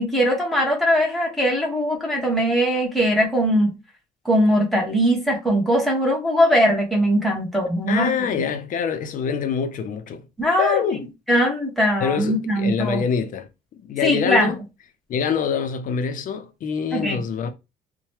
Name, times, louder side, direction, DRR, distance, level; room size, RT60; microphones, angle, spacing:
voice 1, 0.0-3.7 4.2-8.4 10.4-10.8 11.3-13.0 14.0-14.5 16.9-17.2, equal, ahead, 1.0 m, -20 dB
voice 2, 7.9-10.2 10.6-11.1 12.0-14.6 15.1-17.5, left 6 dB, 50° left, 0.5 m, -25 dB
2.8 x 2.2 x 3.1 m
cardioid pair, 110°, 17 cm